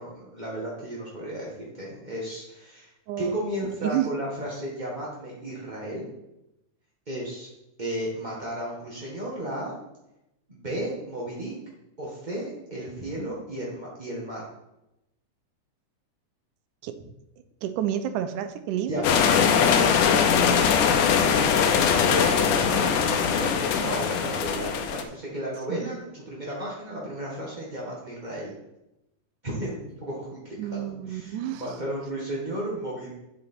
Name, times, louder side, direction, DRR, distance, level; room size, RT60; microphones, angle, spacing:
voice 1, 0.0-2.9 3.2-6.1 7.1-7.5 7.8-9.7 10.5-11.5 12.0-14.5 18.9-19.9 21.0-28.5 29.4-33.1, right 1 dB, 35° right, -5 dB, 0.7 m, -34 dB
voice 2, 3.1-4.1 16.8-17.0 17.6-19.0 25.7-25.9 30.6-31.6, right 11 dB, 80° right, 10 dB, 2.2 m, -30 dB
sound 1, 19.0-25.0, left 7 dB, 90° left, 2.4 m, -21 dB
8.1 x 7.7 x 4.4 m, 0.88 s
omnidirectional pair, 3.6 m